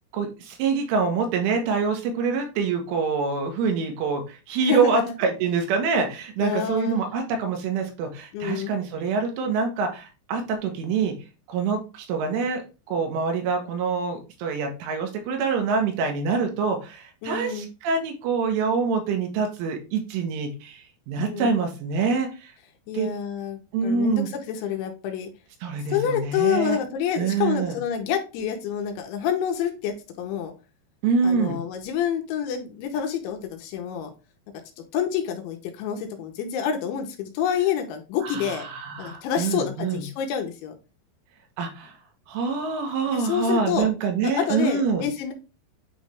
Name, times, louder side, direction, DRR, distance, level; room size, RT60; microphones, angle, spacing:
voice 1, 0.1-11.1 11.5-12.6 12.9-22.5 22.9-23.1 23.7-24.3 25.6-26.8 27.2-27.8 31.0-31.6 38.2-40.0 41.6-41.9 42.3-45.0, right 5 dB, 85° right, 4 dB, 3.6 m, -25 dB
voice 2, 4.6-5.1 6.4-7.0 8.3-8.7 17.2-17.7 21.3-21.5 22.9-25.3 25.9-30.5 31.2-34.1 34.9-38.6 39.0-40.7 43.1-43.9 44.2-45.3, left 8 dB, 85° left, 3 dB, 3.1 m, -28 dB
9.1 x 3.1 x 3.4 m, 0.30 s
omnidirectional pair, 5.6 m